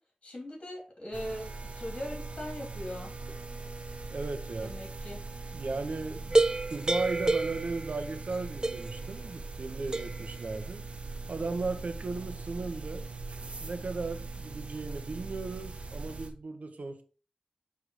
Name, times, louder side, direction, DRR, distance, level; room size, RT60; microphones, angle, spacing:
voice 1, 0.2-3.1 4.6-5.2, left 1 dB, 55° left, -1 dB, 3.2 m, -40 dB
sound 1, 1.1-16.3, right 3 dB, 55° right, 1.1 m, -41 dB
voice 2, 4.1-4.7 5.5-10.8 11.3-13.0 13.6-17.0, right 3 dB, 80° right, 7 dB, 1.0 m, -36 dB
sound 2, 6.3-8.3 8.6-9.1 9.9-10.3, right 2 dB, 30° right, 0.5 m, -28 dB
6.4 x 3.6 x 4.9 m, 0.37 s
wide cardioid pair, 65°, 2 cm